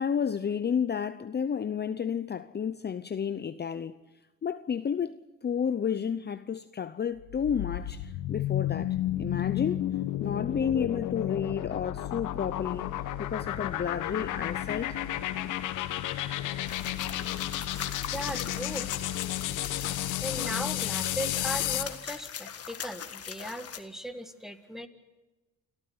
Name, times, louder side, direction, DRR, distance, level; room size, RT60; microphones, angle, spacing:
voice 1, 0.0-4.0 4.4-9.9 10.2-12.9 13.2-15.0, left 7 dB, 35° left, 0.7 m, -31 dB
sound 1, 7.2-22.0, left 13 dB, 90° left, 1.2 m, -32 dB
sound 2, 16.7-23.8, left 8 dB, 50° left, 1.7 m, -41 dB
voice 2, 18.1-19.0 19.7-24.9, equal, ahead, 1.9 m, -38 dB
28.5 x 13.5 x 9.5 m
cardioid pair, 90°, 30 cm